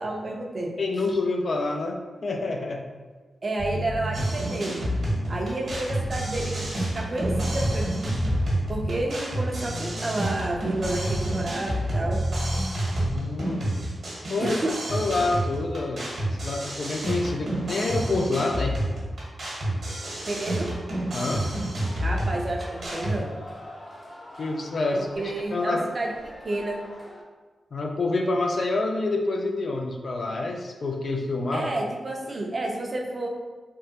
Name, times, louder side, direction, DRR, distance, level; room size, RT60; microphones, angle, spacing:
voice 1, 0.0-0.7 3.4-4.8 5.3-6.6 6.9-8.1 8.7-12.2 14.4-14.7 20.3-20.7 22.0-23.3 24.9-26.1 26.4-26.8 31.5-33.3, right 2 dB, 50° right, 0 dB, 0.5 m, -30 dB
voice 2, 0.8-2.8 13.1-13.8 14.3-14.6 14.9-16.1 16.4-18.8 21.1-21.4 24.4-25.8 27.7-31.7, left 2 dB, 65° left, 2 dB, 0.4 m, -27 dB
sound 1, 3.6-4.2 4.7-7.9 8.1-9.0 9.5-12.7 12.9-13.2, right 1 dB, 90° left, 1.3 m, -30 dB
sound 2, 4.1-23.2, right 1 dB, 70° right, 1.1 m, -30 dB
sound 3, 21.7-27.2, left 1 dB, 35° left, 0.7 m, -44 dB
3.4 x 2.0 x 2.8 m, 1.4 s
cardioid pair, 45°, 0 cm